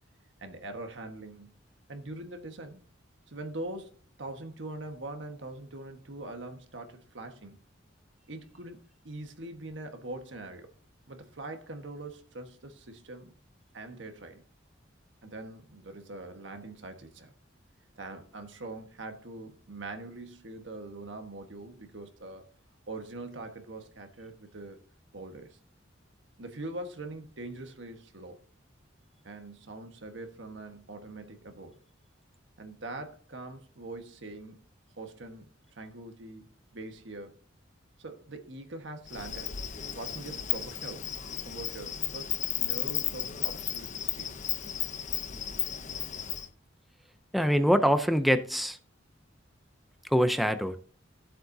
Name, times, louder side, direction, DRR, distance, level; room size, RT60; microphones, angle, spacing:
voice 1, 0.4-1.6 1.9-2.8 3.3-7.6 8.3-10.7 11.1-13.3 13.7-14.4 15.2-17.3 18.0-22.5 22.9-24.8 25.1-25.6 26.4-28.4 29.2-31.8 32.6-34.6 35.0-35.4 35.8-37.4 38.0-39.5 39.9-41.1 41.4-44.4, right 2 dB, 70° right, 1.4 m, -43 dB
Insect, 39.1-46.5, left 10 dB, 40° left, 0.7 m, -34 dB
voice 2, 47.3-48.8 50.1-50.8, equal, ahead, 0.5 m, -24 dB
16.0 x 7.6 x 2.7 m
head